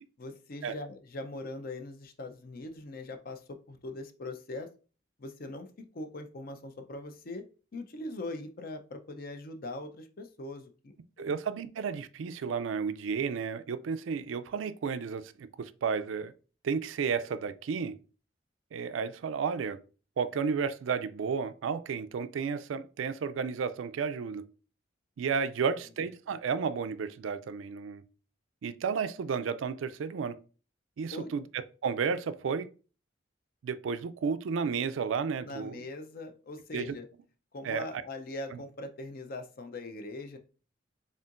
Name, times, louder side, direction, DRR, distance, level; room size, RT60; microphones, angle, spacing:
voice 1, 0.2-4.7 5.2-5.7 5.9-7.4 7.7-10.9 31.1-31.3 35.4-37.1 37.5-40.4, left 2 dB, 50° left, 0.5 m, -41 dB
voice 2, 11.2-16.3 16.6-18.0 18.7-19.8 20.2-24.4 25.2-28.0 28.6-30.4 31.0-31.4 31.8-32.7 33.6-35.9 36.7-36.9 37.6-38.0 38.5-38.6, right 6 dB, 85° right, 0.4 m, -32 dB
4.3 x 3.6 x 2.5 m
head